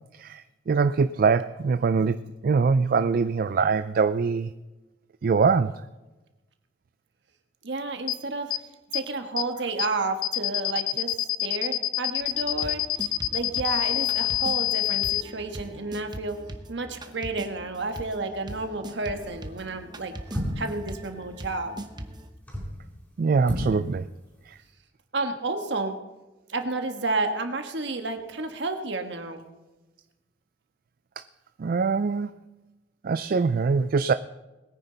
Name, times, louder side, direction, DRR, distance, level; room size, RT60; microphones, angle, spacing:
voice 1, 0.2-2.2 2.4-4.5 5.2-5.8 23.2-24.0 24.5-24.6 31.2-31.3 31.6-32.4 33.0-34.1, right 5 dB, 50° right, 12 dB, 0.4 m, -23 dB
voice 2, 7.6-8.5 8.9-11.1 11.4-12.8 13.3-16.4 16.7-20.1 20.6-21.8 25.1-26.0 26.5-29.4, right 3 dB, 65° right, 6 dB, 1.5 m, -31 dB
sound 1, 8.1-8.2 8.5-8.6 8.9-9.0 9.4-9.5 9.8-9.9 10.2-15.2, left 16 dB, 50° left, 0.5 m, -26 dB
sound 2, 12.2-22.3, right 1 dB, 25° right, 0.9 m, -41 dB
sound 3, 19.1-19.5 20.3-20.8 22.3-22.8 23.4-23.8 24.1-24.2, equal, 10° left, 4.3 m, -31 dB
21.0 x 9.7 x 4.0 m, 1.1 s
head